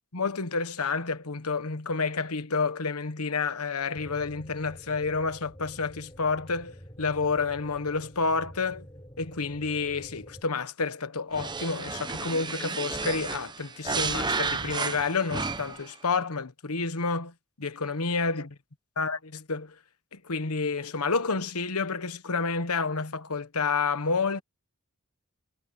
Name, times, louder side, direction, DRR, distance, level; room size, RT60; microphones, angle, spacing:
voice 1, 0.1-8.8 9.2-18.5 19.0-19.7 20.1-24.4, left 4 dB, 85° left, 1.3 m, -29 dB
sound 1, 4.0-10.4, equal, 20° left, 6.0 m, -48 dB
sound 2, 11.3-15.9, right 4 dB, 20° right, 0.8 m, -32 dB
head